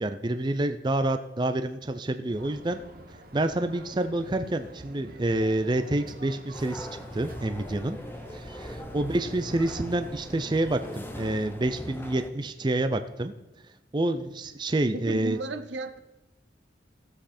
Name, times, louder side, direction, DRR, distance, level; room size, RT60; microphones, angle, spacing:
voice 1, 0.0-2.8 3.3-6.9 7.1-8.0 8.3-13.3 13.9-15.4, right 1 dB, 25° right, 9 dB, 0.4 m, -28 dB
sound 1, 2.3-11.6, right 1 dB, 50° right, 1.1 m, -48 dB
sound 2, 6.5-12.3, left 1 dB, 10° left, 0.7 m, -40 dB
voice 2, 14.9-16.0, right 3 dB, 85° right, 10 dB, 0.8 m, -34 dB
16.5 x 7.6 x 4.3 m, 1.0 s
head